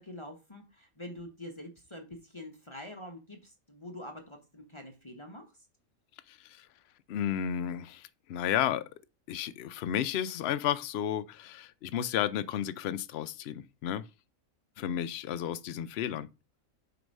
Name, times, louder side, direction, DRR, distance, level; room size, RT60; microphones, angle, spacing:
voice 1, 0.0-5.7, left 1 dB, 25° left, 1.0 m, -45 dB
voice 2, 6.3-6.7 7.1-8.9 9.3-14.1 14.8-16.3, left 10 dB, 65° left, 0.7 m, -32 dB
7.8 x 3.0 x 5.3 m
omnidirectional pair, 1.5 m